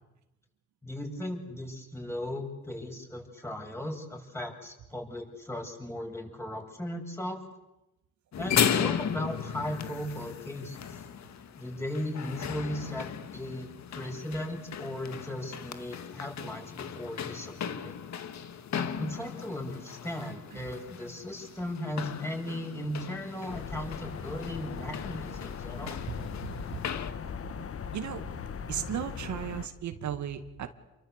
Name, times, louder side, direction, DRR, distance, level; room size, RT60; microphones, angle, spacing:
voice 1, 0.8-7.4 8.4-11.0 11.6-18.0 19.0-26.0, left 1 dB, 10° left, 2 dB, 7.4 m, -37 dB
sound 1, 8.3-27.1, left 8 dB, 65° left, 2.1 m, -36 dB
sound 2, 23.5-29.7, left 7 dB, 50° left, 1.6 m, -39 dB
voice 2, 27.9-28.3 28.7-30.7, right 9 dB, 70° right, 7 dB, 2.2 m, -35 dB
29.0 x 24.0 x 8.3 m, 0.93 s
cardioid pair, 90°, 30 cm